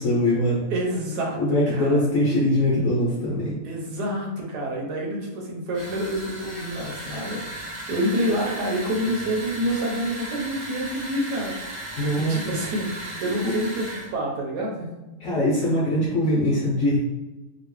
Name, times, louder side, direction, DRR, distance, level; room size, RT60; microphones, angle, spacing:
voice 1, 0.0-0.7 1.4-3.6 12.0-12.4 13.4-13.5 15.2-17.0, left 1 dB, 60° left, -7 dB, 1.1 m, -22 dB
voice 2, 0.7-1.4 1.7-2.0 3.6-14.9, equal, 85° right, -1 dB, 1.4 m, -28 dB
sound 1, 5.7-14.1, right 1 dB, 35° right, 0.9 m, -36 dB
3.0 x 2.8 x 3.0 m, 1.1 s
omnidirectional pair, 1.7 m